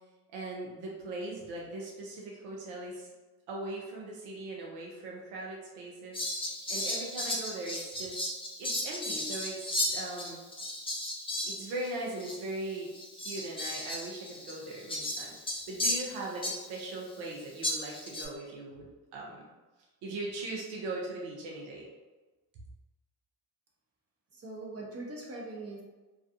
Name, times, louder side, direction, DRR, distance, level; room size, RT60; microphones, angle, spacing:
voice 1, 0.3-3.1 3.5-6.2 6.7-8.2 8.6-10.4 11.4-15.4 15.7-18.9 19.1-19.5 20.0-21.9, right 2 dB, 75° right, -3 dB, 0.7 m, -39 dB
Fowl, 6.1-11.9 12.2-12.3 12.9-16.9 17.6-18.3, left 1 dB, 10° left, 0.7 m, -35 dB
voice 2, 24.3-25.8, right 2 dB, 30° right, -2 dB, 0.8 m, -41 dB
2.5 x 2.3 x 2.6 m, 1.2 s
hypercardioid pair, 55°, 49 cm